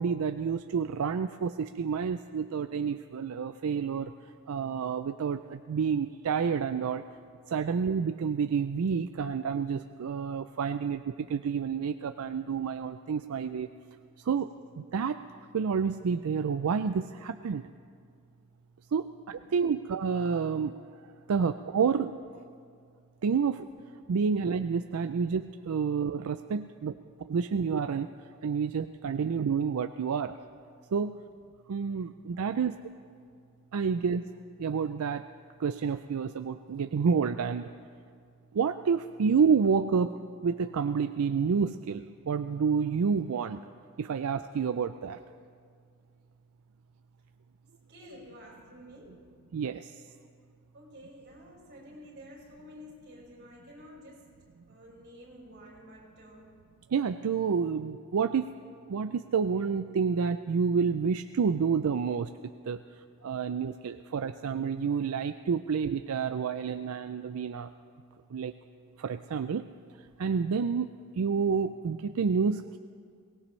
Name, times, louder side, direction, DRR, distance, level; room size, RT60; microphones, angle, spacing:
voice 1, 0.0-4.1 4.5-7.0 7.5-13.7 14.2-14.5 14.8-17.7 18.9-20.7 21.3-22.2 23.2-23.7 24.1-28.1 28.4-30.4 30.9-31.1 31.7-32.8 33.7-34.2 34.6-35.2 35.6-37.7 38.5-40.1 40.4-43.6 44.0-45.2 49.5-50.0 56.9-58.5 58.9-62.3 62.6-62.8 63.2-67.7 68.3-68.5 69.0-69.7 70.0-72.8, right 6 dB, 80° right, 9 dB, 0.4 m, -29 dB
voice 2, 47.9-49.3 50.7-54.3 54.7-56.6, equal, 50° right, -4 dB, 5.1 m, -51 dB
22.5 x 18.5 x 3.2 m, 2.2 s
head